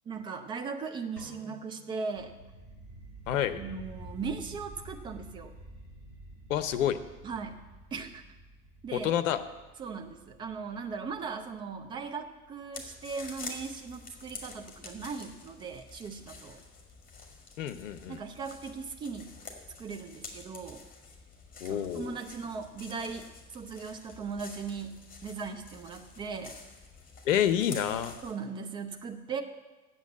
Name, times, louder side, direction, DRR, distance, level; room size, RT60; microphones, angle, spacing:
voice 1, 0.1-2.4 3.6-5.5 7.2-8.2 8.8-9.1 9.8-16.6 18.1-19.4 19.8-20.9 21.6-26.6 28.2-29.4, right 5 dB, 10° right, 5 dB, 0.4 m, -38 dB
sound 1, 1.2-3.2, right 1 dB, 90° right, 3.0 m, -52 dB
sound 2, 2.1-13.2, right 1 dB, 30° right, 3.2 m, -50 dB
voice 2, 3.3-3.6 6.5-7.0 8.9-9.4 17.6-18.2 21.6-22.2 27.2-28.2, left 10 dB, 55° left, 11 dB, 0.8 m, -28 dB
sound 3, 12.7-28.3, left 4 dB, 20° left, 1.9 m, -48 dB
8.3 x 7.2 x 8.5 m, 1.2 s
figure-of-eight pair, 85°, 45 cm